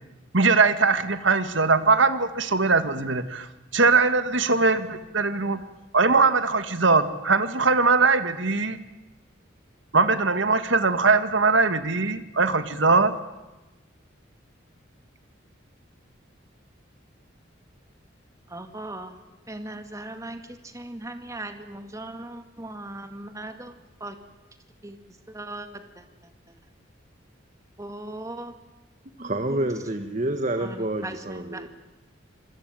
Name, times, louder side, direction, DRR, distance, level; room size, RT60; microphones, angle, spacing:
voice 1, 0.3-3.5 3.7-5.6 5.9-8.8 9.9-13.1, right 4 dB, 75° right, 10 dB, 2.0 m, -21 dB
voice 2, 18.5-19.2 19.5-20.4 20.7-23.7 24.0-24.1 24.8-25.0 25.3-25.7 27.8-28.5 30.6-30.7 31.0-31.1 31.4-31.7, right 2 dB, 15° right, 7 dB, 2.2 m, -37 dB
voice 3, 29.2-31.7, right 1 dB, 40° right, 7 dB, 1.5 m, -28 dB
26.0 x 24.5 x 9.2 m, 1.1 s
head